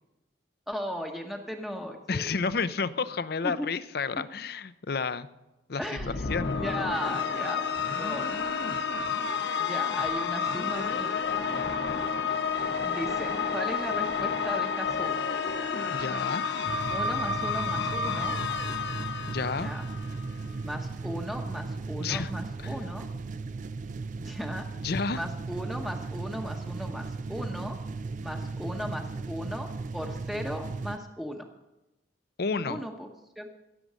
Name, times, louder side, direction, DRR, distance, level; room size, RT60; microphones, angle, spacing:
voice 1, 0.7-2.2 3.4-3.7 5.8-8.4 8.7-8.9 9.6-11.1 12.8-15.3 16.9-18.4 19.6-19.8 20.6-23.1 24.2-24.6 25.1-27.8 28.2-31.5 32.6-33.1 33.4-33.5, equal, ahead, 2 dB, 1.0 m, -37 dB
voice 2, 2.1-5.3 5.7-6.5 15.9-16.4 19.3-19.7 22.0-22.3 22.6-22.7 24.8-25.2 32.4-32.8, left 4 dB, 60° left, 14 dB, 0.6 m, -31 dB
sound 1, 6.0-20.3, left 5 dB, 80° left, 0.9 m, -30 dB
sound 2, 16.7-31.0, right 3 dB, 45° right, 0.4 m, -36 dB
16.0 x 7.7 x 6.2 m, 0.99 s
head